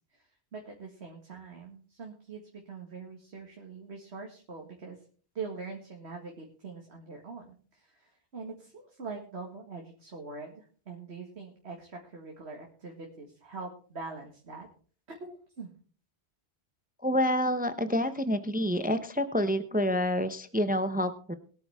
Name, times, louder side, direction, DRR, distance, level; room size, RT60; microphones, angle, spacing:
voice 1, 0.1-5.0 5.3-14.7 15.1-15.7, right 4 dB, 90° right, 1 dB, 2.1 m, -43 dB
voice 2, 17.0-21.3, equal, 10° right, 11 dB, 0.7 m, -28 dB
21.5 x 8.5 x 3.6 m, 0.43 s
omnidirectional pair, 1.1 m